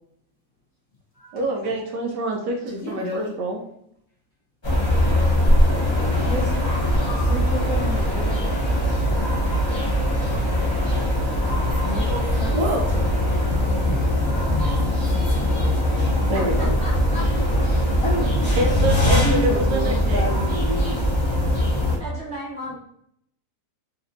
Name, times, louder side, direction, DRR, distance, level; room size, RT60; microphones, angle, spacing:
voice 1, 1.3-3.6 12.5-12.9 16.3-16.7 18.6-20.3, right 1 dB, 75° right, 2 dB, 1.1 m, -26 dB
voice 2, 2.7-3.3 11.2-12.6 12.9-13.0 13.5-16.1 18.3-18.9, left 3 dB, 45° left, -6 dB, 1.1 m, -34 dB
sound 1, 4.6-22.0, equal, 20° left, 0.7 m, -21 dB
voice 3, 6.2-6.7 7.1-8.3 9.1-9.4 9.7-10.2 18.0-18.3 19.1-21.1, equal, 70° left, -4 dB, 0.8 m, -30 dB
voice 4, 16.3-17.3 22.0-22.7, left 1 dB, 55° right, -6 dB, 0.8 m, -34 dB
4.0 x 2.5 x 2.6 m, 0.71 s
omnidirectional pair, 2.0 m